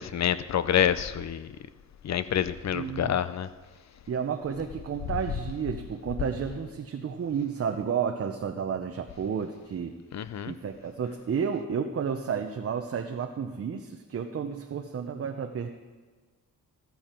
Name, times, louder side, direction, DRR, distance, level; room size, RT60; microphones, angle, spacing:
voice 1, 0.0-1.5 2.0-3.5 10.1-10.5, left 9 dB, 50° left, 0.6 m, -27 dB
voice 2, 2.7-3.2 4.1-10.0 10.5-15.8, right 7 dB, 45° right, 0.7 m, -31 dB
14.0 x 14.0 x 4.4 m
wide cardioid pair, 130°, 34 cm